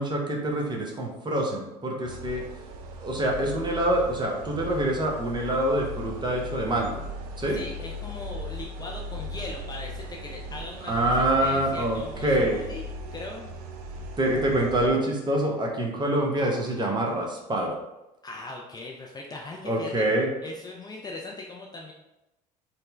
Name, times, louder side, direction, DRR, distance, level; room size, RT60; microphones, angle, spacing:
voice 1, 0.0-2.4 3.0-7.0 7.4-7.6 10.9-12.6 14.2-17.8 19.6-20.3, right 1 dB, 20° right, 0 dB, 0.8 m, -26 dB
sound 1, 2.0-14.9, equal, 65° right, 0.4 m, -38 dB
voice 2, 7.5-11.1 11.4-13.5 18.2-20.1 20.4-21.9, left 3 dB, 20° left, -1 dB, 0.4 m, -39 dB
4.2 x 2.1 x 3.3 m, 0.95 s
figure-of-eight pair, 60°, 21 cm